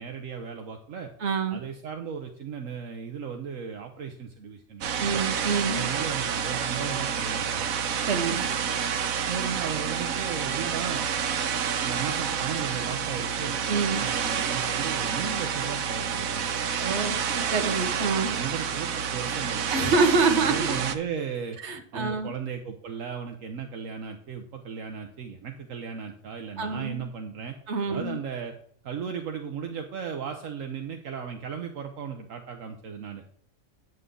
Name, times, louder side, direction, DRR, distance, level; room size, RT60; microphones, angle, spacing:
voice 1, 0.0-1.1 1.5-5.2 5.7-7.7 8.4-8.5 9.3-11.1 11.8-13.6 14.0-16.4 18.3-21.6 21.9-27.6 27.8-28.5 28.8-33.2, right 7 dB, 70° right, 4 dB, 1.2 m, -36 dB
voice 2, 1.2-1.6 5.0-5.9 8.0-8.4 13.7-14.1 16.8-18.4 19.7-20.7 21.6-22.3 26.6-27.0 27.7-28.2, right 4 dB, 55° right, 6 dB, 1.4 m, -26 dB
sound 1, 4.8-21.0, right 7 dB, 90° right, 1.2 m, -29 dB
9.3 x 8.1 x 3.8 m, 0.62 s
omnidirectional pair, 1.4 m